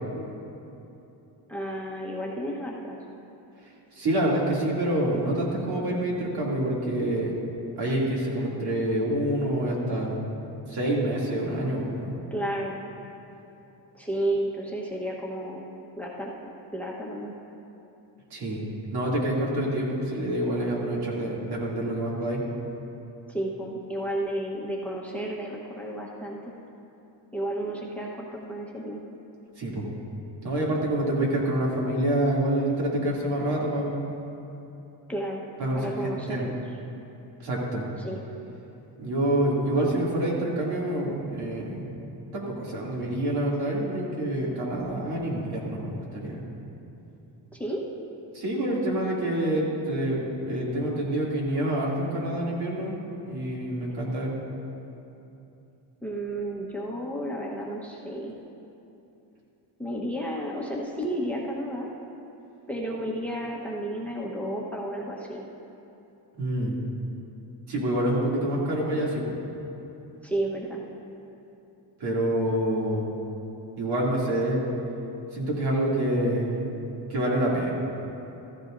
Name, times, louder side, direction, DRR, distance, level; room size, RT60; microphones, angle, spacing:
voice 1, 1.5-3.0 12.3-12.8 13.9-15.7 16.0-16.3 16.7-17.3 23.3-26.5 27.3-29.0 35.1-35.4 35.7-36.6 38.0-38.2 47.5-47.8 56.0-58.3 59.8-61.9 62.7-65.4 70.2-70.8, right 1 dB, 5° left, -2 dB, 1.1 m, -32 dB
voice 2, 3.9-7.3 7.8-10.2 10.7-12.1 18.3-18.6 18.9-22.4 29.6-29.8 30.4-34.0 35.6-36.5 37.4-37.8 39.0-41.9 42.3-46.4 48.3-52.9 53.2-54.3 66.4-66.8 67.7-69.4 72.0-73.1 73.8-74.6 75.3-76.7 77.1-77.7, right 1 dB, 60° right, -4 dB, 2.7 m, -27 dB
14.5 x 14.5 x 2.6 m, 2.9 s
cardioid pair, 110°, 44 cm